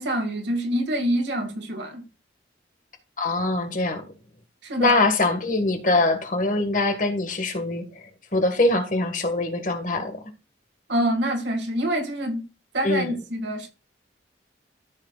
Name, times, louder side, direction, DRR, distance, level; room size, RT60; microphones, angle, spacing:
voice 1, 0.0-2.0 4.6-5.0 10.9-12.5 12.7-13.7, right 1 dB, 75° right, 2.1 m, -26 dB
voice 2, 3.2-4.1 4.8-10.2 12.8-13.1, left 2 dB, 45° left, 1.8 m, -23 dB
14.0 x 6.5 x 2.4 m
head